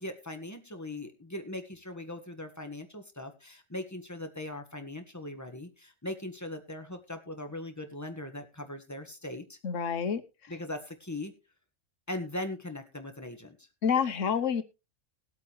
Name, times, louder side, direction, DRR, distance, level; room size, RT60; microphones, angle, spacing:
voice 1, 0.0-9.6 10.5-11.3 12.1-13.7, left 1 dB, 15° left, 6 dB, 1.6 m, -40 dB
voice 2, 9.6-10.2 13.8-14.6, left 7 dB, 80° left, 12 dB, 1.4 m, -28 dB
20.0 x 8.2 x 3.2 m, 0.28 s
omnidirectional pair, 1.3 m